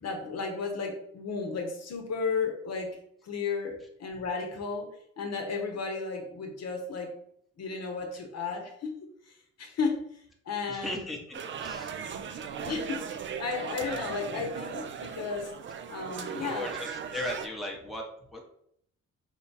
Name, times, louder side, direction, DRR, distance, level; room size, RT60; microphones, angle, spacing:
voice 1, 0.0-3.0 3.2-4.9 5.2-7.1 7.6-9.0 9.3-11.0 12.6-13.1 13.4-15.5 15.9-16.7, left 4 dB, 60° left, 3 dB, 0.9 m, -34 dB
voice 2, 10.7-12.0 12.3-12.5 16.4-18.4, left 1 dB, ahead, -1 dB, 0.9 m, -38 dB
sound 1, 11.3-17.5, right 7 dB, 40° right, 0.4 m, -38 dB
4.4 x 2.3 x 4.0 m, 0.70 s
cardioid pair, 90°, 30 cm